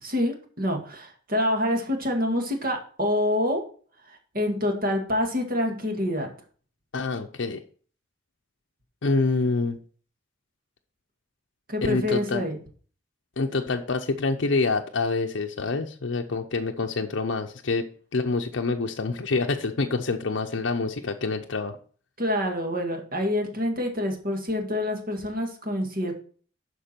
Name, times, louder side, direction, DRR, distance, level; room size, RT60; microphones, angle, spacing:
voice 1, 0.0-3.6 4.1-6.3 11.7-12.6 22.2-26.1, left 1 dB, 45° right, 3 dB, 2.0 m, -27 dB
voice 2, 6.9-7.6 9.0-9.8 11.8-12.4 13.4-17.9 18.1-21.8, left 3 dB, 75° left, 3 dB, 0.7 m, -26 dB
12.0 x 4.8 x 4.4 m, 0.43 s
head